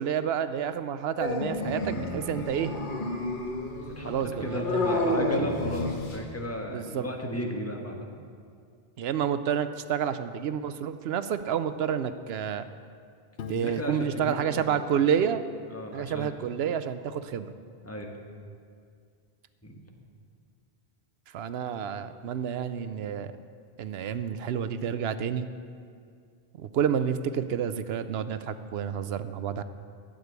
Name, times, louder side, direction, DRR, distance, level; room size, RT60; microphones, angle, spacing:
voice 1, 0.0-2.7 4.1-5.0 6.7-7.0 9.0-12.6 13.5-15.4 15.9-17.5 21.3-23.3 23.8-25.5 26.6-29.6, right 8 dB, 75° right, 12 dB, 0.8 m, -29 dB
Dog, 1.2-6.3, left 1 dB, 50° left, 1.4 m, -30 dB
voice 2, 3.9-8.1 13.5-14.8 15.7-16.3 17.8-18.1 19.6-19.8, equal, 15° left, 2 dB, 1.3 m, -35 dB
Piano, 13.4-16.1, left 5 dB, 90° left, 1.0 m, -45 dB
15.0 x 5.2 x 9.4 m, 2.2 s
omnidirectional pair, 1.0 m